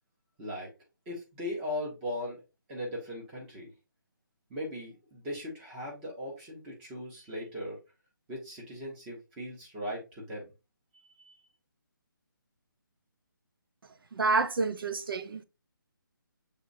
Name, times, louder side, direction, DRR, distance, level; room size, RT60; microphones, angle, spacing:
voice 1, 0.4-0.7 1.1-2.4 2.7-3.7 4.5-7.8 8.3-10.5 11.2-11.4, left 1 dB, 5° right, 0.7 m, -38 dB
voice 2, 14.1-15.4, right 3 dB, 90° right, 0.6 m, -28 dB
6.7 x 3.0 x 2.5 m
hypercardioid pair, 175°, 12 cm